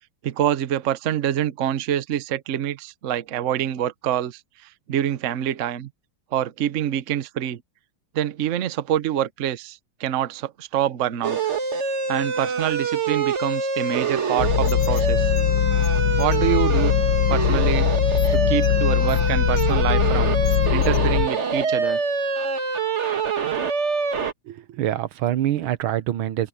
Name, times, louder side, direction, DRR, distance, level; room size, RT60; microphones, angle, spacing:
voice 1, 0.2-4.4 4.9-5.9 6.3-7.6 8.1-11.4 12.1-15.3 16.2-16.9 17.3-17.9 18.3-20.4 20.7-22.0, right 11 dB, 55° right, 0.9 m, -26 dB
sound 1, 11.2-24.3, right 5 dB, 40° right, 1.5 m, -25 dB
sound 2, 14.4-21.3, left 13 dB, 80° left, 0.9 m, -21 dB
voice 2, 24.5-26.5, right 12 dB, 85° right, 1.7 m, -25 dB
omnidirectional pair, 2.3 m